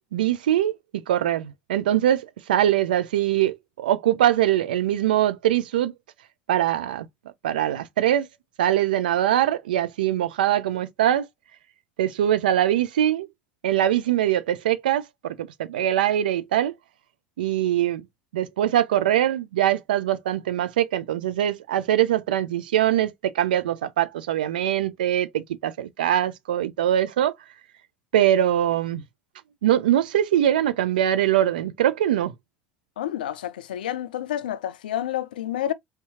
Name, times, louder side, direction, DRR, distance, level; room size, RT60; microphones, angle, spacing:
voice 1, 0.1-5.9 6.5-7.1 7.4-8.3 8.6-11.3 12.0-13.3 13.6-16.7 17.4-18.0 18.3-27.4 28.1-29.0 29.6-32.3, right 11 dB, 85° right, 0.4 m, -22 dB
voice 2, 33.0-35.7, left 11 dB, 90° left, 0.3 m, -29 dB
3.5 x 2.8 x 2.7 m
hypercardioid pair, 70°, 5 cm